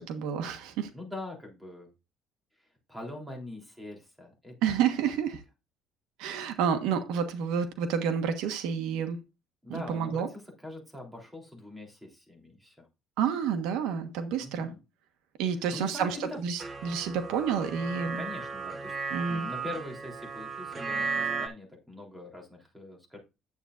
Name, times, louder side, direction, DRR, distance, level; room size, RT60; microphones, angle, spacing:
voice 1, 0.0-0.9 4.6-5.4 6.2-9.2 9.7-10.3 13.2-14.7 15.4-18.2 19.1-19.5, right 7 dB, 85° right, 1.3 m, -29 dB
voice 2, 0.9-1.9 2.9-4.8 9.6-10.2 10.6-12.9 14.4-14.8 15.7-16.4 18.2-18.9 19.3-23.2, left 2 dB, 5° right, 3.4 m, -43 dB
sound 1, 16.6-21.5, right 4 dB, 20° right, 1.2 m, -35 dB
10.0 x 8.3 x 2.5 m
cardioid pair, 155°, 0 cm